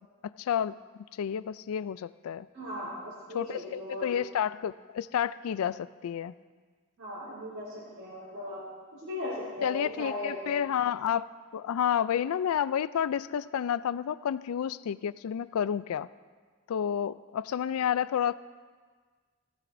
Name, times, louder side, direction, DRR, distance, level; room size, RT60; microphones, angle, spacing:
voice 1, 0.4-0.7 1.2-2.5 3.3-6.3 9.6-11.3 11.5-16.1 16.7-18.3, left 9 dB, 85° left, 17 dB, 0.3 m, -30 dB
voice 2, 2.5-4.1 7.0-8.6 8.9-10.6, left 1 dB, 90° right, -8 dB, 4.1 m, -38 dB
16.5 x 15.5 x 2.6 m, 1.5 s
head